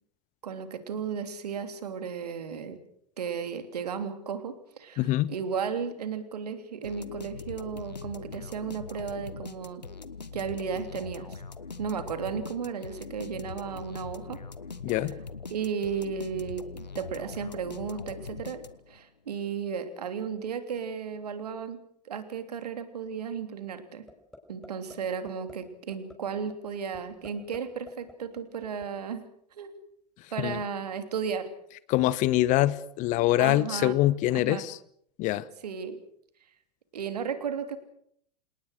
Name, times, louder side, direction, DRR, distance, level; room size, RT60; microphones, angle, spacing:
voice 1, 0.4-2.8 3.2-9.8 10.3-11.4 11.8-14.4 14.9-15.0 15.5-16.6 16.9-18.6 18.9-21.8 22.0-24.0 24.5-29.2 29.5-29.7 30.3-31.5 33.4-33.9 34.5-34.6 35.6-36.0 36.9-37.8, right 6 dB, 70° right, 9 dB, 3.2 m, -34 dB
voice 2, 5.0-5.3 14.8-15.1 30.4-30.6 31.9-34.8 35.2-35.5, left 15 dB, 35° left, 20 dB, 1.0 m, -24 dB
sound 1, 6.8-19.0, left 4 dB, 85° left, 1.4 m, -42 dB
sound 2, 24.1-24.4 24.6-25.0 25.3-25.5 25.9-26.1 26.5-26.6 26.9-27.6 27.9-28.9, left 1 dB, 5° left, 5.7 m, -48 dB
27.5 x 19.0 x 6.5 m, 0.67 s
figure-of-eight pair, 90°, 21 cm